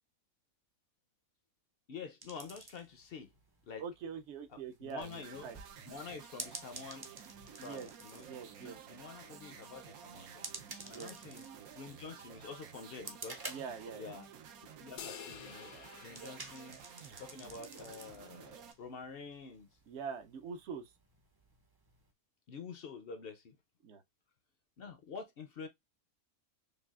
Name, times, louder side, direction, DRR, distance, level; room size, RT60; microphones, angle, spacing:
voice 1, 1.9-3.3 3.7-3.8 4.8-5.5 5.9-7.1 7.6-10.5 10.8-11.5 11.7-13.5 13.9-14.3 14.8-16.8 17.2-19.7 22.5-23.5 24.8-25.7, left 5 dB, 60° left, 0.6 m, -48 dB
sound 1, 2.2-22.1, right 2 dB, 30° right, 0.4 m, -52 dB
voice 2, 3.8-5.6 7.6-7.9 8.3-8.8 10.9-11.1 13.5-14.2 16.2-16.4 19.9-20.8 23.8-24.0, right 6 dB, 60° right, 0.8 m, -44 dB
sound 2, 5.0-18.7, right 7 dB, 80° right, 1.1 m, -53 dB
sound 3, 15.0-17.5, left 9 dB, 80° left, 1.0 m, -50 dB
6.5 x 2.3 x 2.3 m
omnidirectional pair, 1.5 m